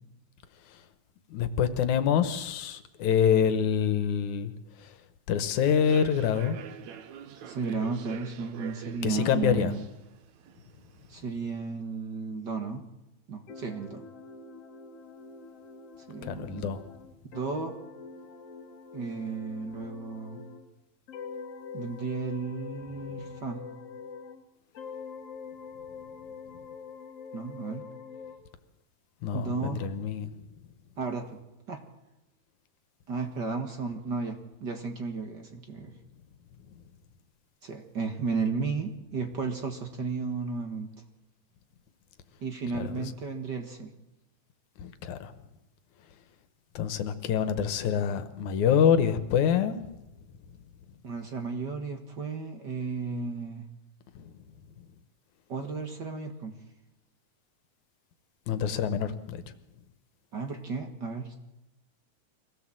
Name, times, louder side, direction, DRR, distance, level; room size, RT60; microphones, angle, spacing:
voice 1, 1.3-4.5 5.3-6.6 9.0-9.7 16.2-16.8 29.2-30.3 42.7-42.9 44.8-45.3 46.8-49.9 54.2-54.3 58.5-59.4, left 8 dB, 85° left, 11 dB, 2.6 m, -26 dB
Human voice / Subway metro underground, 5.7-11.2, right 8 dB, 75° right, 2.4 m, -45 dB
voice 2, 7.4-9.8 11.1-12.8 13.3-14.0 16.1-16.7 17.2-17.8 18.9-20.4 21.7-23.6 27.3-27.8 29.3-29.9 31.0-31.4 31.7-31.8 33.1-35.9 37.6-40.9 42.4-43.9 51.0-53.6 55.5-56.5 60.3-61.3, right 4 dB, 45° right, 5 dB, 1.8 m, -34 dB
sound 1, 13.5-20.7 21.1-24.4 24.7-28.4, left 5 dB, 60° left, 2.6 m, -45 dB
24.0 x 17.0 x 7.7 m, 0.95 s
omnidirectional pair, 3.3 m